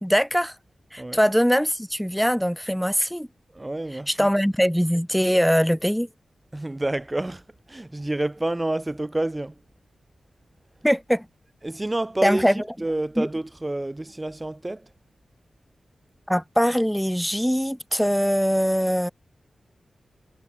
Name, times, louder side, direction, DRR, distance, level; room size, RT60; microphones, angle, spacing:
voice 1, 0.0-0.5 0.9-3.3 4.1-6.1 10.8-11.3 12.2-12.6 13.2-13.3 16.3-19.1, equal, ahead, 2.7 m, -22 dB
voice 2, 3.5-4.3 6.5-9.6 11.6-14.9, right 1 dB, 20° right, 2.8 m, -29 dB
wide cardioid pair, 80°, 0 cm